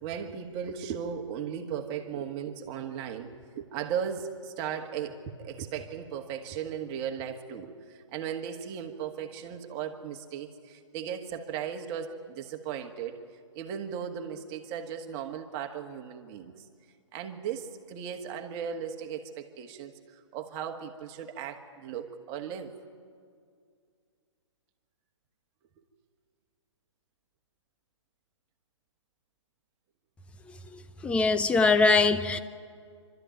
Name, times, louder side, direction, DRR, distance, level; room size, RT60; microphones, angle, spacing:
voice 1, 0.0-13.2 13.5-16.7 17.1-22.7, right 8 dB, 30° right, 1.7 m, -37 dB
voice 2, 31.0-32.4, left 3 dB, 5° left, 0.6 m, -22 dB
26.5 x 13.0 x 9.2 m
figure-of-eight pair, 130°, 16 cm